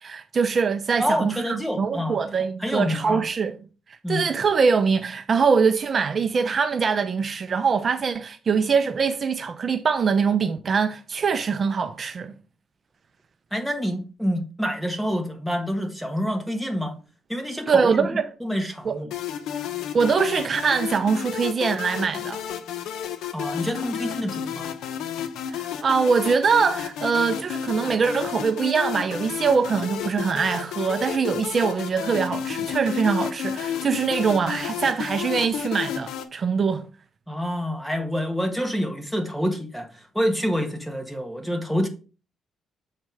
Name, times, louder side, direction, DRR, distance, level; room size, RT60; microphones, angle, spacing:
voice 1, 0.0-3.5 4.1-12.3 17.7-18.2 18.8-19.0 19.9-22.4 25.5-36.9, right 5 dB, 45° right, 0.6 m, -23 dB
voice 2, 1.0-2.2 2.6-3.2 4.0-4.2 13.5-17.0 17.3-19.1 23.3-24.7 37.3-41.9, equal, ahead, 1.6 m, -27 dB
sound 1, 19.1-36.2, left 9 dB, 85° left, 0.8 m, -32 dB
7.5 x 4.4 x 4.7 m
cardioid pair, 90°, 0 cm